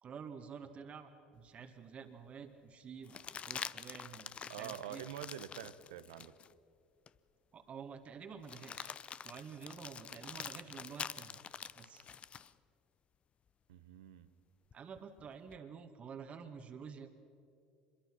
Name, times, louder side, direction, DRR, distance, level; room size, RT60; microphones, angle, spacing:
voice 1, 0.0-5.1 7.5-9.0 9.2-11.4 11.8-12.1 14.7-17.1, right 6 dB, 40° right, 7 dB, 1.8 m, -50 dB
sound 1, 1.5-1.6 3.0-6.5 7.1-7.2 8.4-12.5 14.7-15.6, left 7 dB, 40° left, 0.6 m, -46 dB
voice 2, 4.5-6.3 13.7-14.3, right 11 dB, 80° right, 13 dB, 0.9 m, -46 dB
25.5 x 22.0 x 6.1 m, 2.5 s
hypercardioid pair, 75°, 3 cm